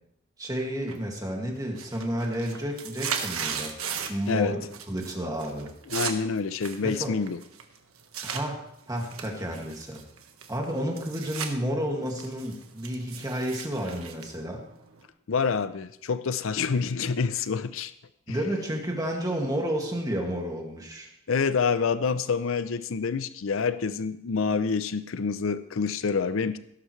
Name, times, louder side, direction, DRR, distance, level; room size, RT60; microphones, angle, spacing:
voice 1, 0.4-3.7 4.1-5.7 6.8-7.2 8.2-8.6 8.9-10.0 10.5-14.6 18.3-21.1, equal, 15° right, 2.1 m, -31 dB
sound 1, 0.9-1.3 1.6-4.3 4.6-5.1 5.4-8.4 9.0-11.5 11.9-15.1, right 7 dB, 85° right, 1.4 m, -36 dB
voice 2, 5.9-7.4 15.3-17.9 18.3-18.4 21.3-26.6, left 5 dB, 70° left, 0.5 m, -27 dB
17.5 x 11.5 x 3.2 m
head